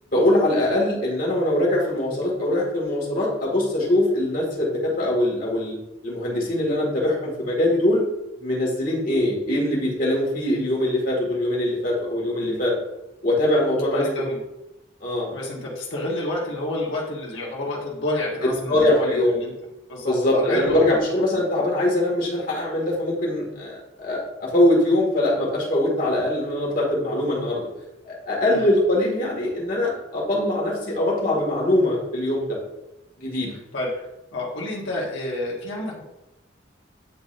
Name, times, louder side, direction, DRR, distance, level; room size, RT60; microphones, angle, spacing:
voice 1, 0.1-5.8 6.0-8.0 8.4-12.7 13.2-14.1 15.0-15.3 18.4-19.4 20.1-27.6 28.3-32.5 33.2-33.5, left 1 dB, 45° left, -5 dB, 1.9 m, -22 dB
voice 2, 13.9-14.4 15.3-19.5 19.9-21.0 28.5-28.7 33.7-34.1 34.3-36.0, left 1 dB, 85° left, -5 dB, 1.4 m, -29 dB
9.2 x 3.9 x 2.6 m, 0.93 s
head